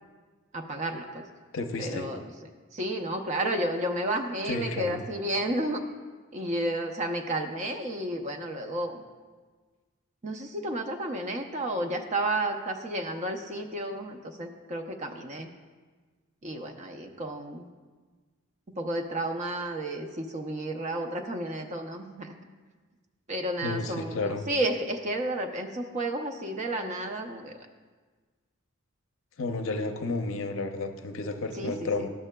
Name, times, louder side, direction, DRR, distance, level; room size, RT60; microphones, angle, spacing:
voice 1, 0.5-1.2 1.8-2.2 2.7-5.8 6.3-9.0 10.2-15.5 16.4-17.7 18.7-22.3 23.3-27.7 31.5-32.1, right 1 dB, 35° right, 4 dB, 0.5 m, -32 dB
voice 2, 1.5-2.1 4.4-5.0 23.6-24.5 29.4-32.1, left 3 dB, 65° left, 5 dB, 0.6 m, -31 dB
12.0 x 7.3 x 2.2 m, 1.4 s
head